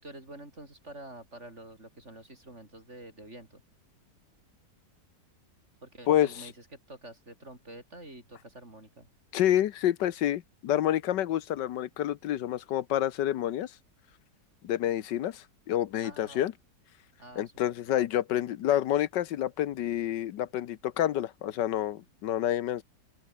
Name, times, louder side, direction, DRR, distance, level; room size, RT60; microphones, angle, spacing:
voice 1, 0.0-3.6 5.8-9.1 16.0-16.5 17.2-17.8, right 1 dB, 40° right, 7.5 m, -48 dB
voice 2, 9.3-13.7 14.6-16.5 17.4-22.8, left 12 dB, 85° left, 1.5 m, -28 dB
open air
omnidirectional pair, 1.9 m